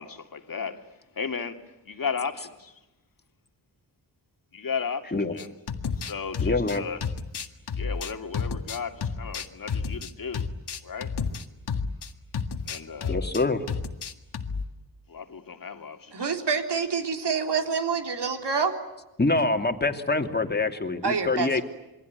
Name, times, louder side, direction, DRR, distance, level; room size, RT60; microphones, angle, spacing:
voice 1, 0.0-2.8 4.5-5.5 6.0-7.0 7.8-10.5 10.8-11.1 12.7-13.3 15.1-16.2, left 6 dB, 50° left, 2.2 m, -35 dB
sound 1, 5.4-12.1 12.3-13.4 13.7-14.6, left 5 dB, 65° left, 1.9 m, -31 dB
voice 2, 6.4-6.8 13.1-13.6 19.2-21.6, left 3 dB, 25° left, 2.7 m, -25 dB
voice 3, 16.1-18.7 21.0-21.6, right 5 dB, 70° right, 3.8 m, -27 dB
28.0 x 22.5 x 9.6 m
wide cardioid pair, 90°, 42 cm